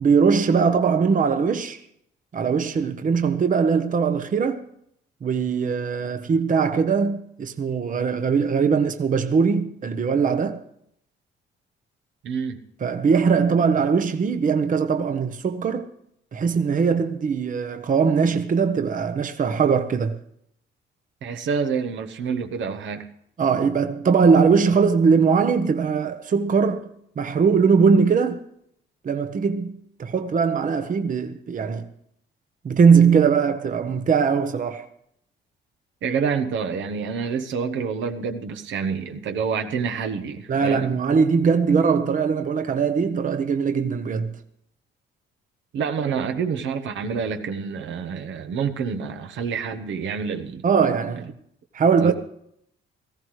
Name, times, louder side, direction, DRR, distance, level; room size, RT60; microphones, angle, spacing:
voice 1, 0.0-1.8 2.3-4.6 5.2-10.6 12.8-15.9 16.3-20.2 23.4-26.8 27.2-28.4 29.0-31.9 32.6-34.9 40.5-44.4 50.6-51.3 51.7-52.1, right 5 dB, 40° right, 0.9 m, -20 dB
voice 2, 12.2-12.6 21.2-23.1 36.0-40.9 45.7-50.6 52.0-52.1, right 6 dB, 75° right, 1.2 m, -27 dB
18.0 x 14.5 x 3.2 m
cardioid pair, 90°, 20 cm